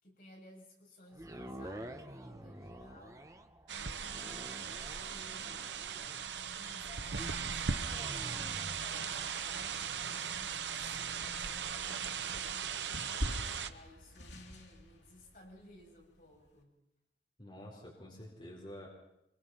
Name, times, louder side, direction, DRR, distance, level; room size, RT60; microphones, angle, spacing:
voice 1, 0.0-3.2 3.8-5.8 6.5-12.9 13.6-16.7, left 1 dB, 50° left, -1 dB, 7.6 m, -57 dB
sound 1, 1.1-15.3 15.8-15.9, right 1 dB, 15° right, 1.1 m, -51 dB
sound 2, 3.7-13.7, right 7 dB, 85° right, 1.0 m, -38 dB
sound 3, 9.8-10.6 11.2-16.5, equal, 80° left, 3.2 m, -44 dB
voice 2, 17.4-18.9, left 1 dB, 25° left, -2 dB, 4.3 m, -49 dB
25.0 x 23.0 x 5.8 m, 0.85 s
head